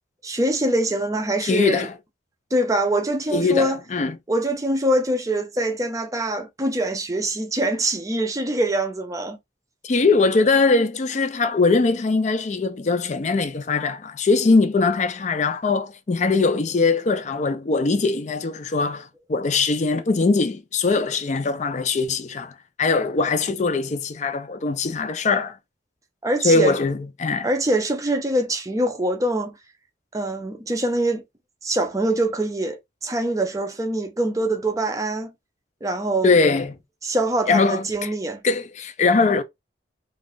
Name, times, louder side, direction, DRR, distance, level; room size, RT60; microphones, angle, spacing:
voice 1, 0.2-1.9 2.5-3.8 4.3-9.4 26.2-26.8 27.4-29.5 30.1-31.2 31.6-35.3 35.8-36.3 37.0-38.4, right 1 dB, 15° right, 0.5 m, -24 dB
voice 2, 1.4-1.9 3.3-4.2 9.8-25.6 26.4-27.5 36.2-36.8 37.5-38.1 38.4-39.4, left 3 dB, 40° left, 0.4 m, -21 dB
2.5 x 2.4 x 3.5 m
head